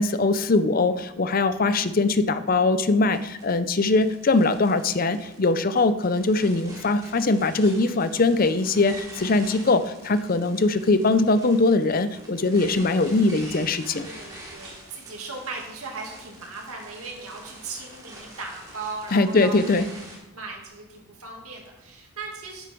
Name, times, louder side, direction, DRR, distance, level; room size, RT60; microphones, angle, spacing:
voice 1, 0.0-14.1 19.1-19.9, left 3 dB, 40° left, 12 dB, 0.5 m, -21 dB
sound 1, 3.1-20.2, right 1 dB, 15° right, 2.6 m, -45 dB
voice 2, 14.0-19.6 19.9-20.0 20.3-22.7, right 4 dB, 80° right, 0 dB, 2.2 m, -38 dB
10.0 x 8.2 x 4.5 m, 0.93 s
head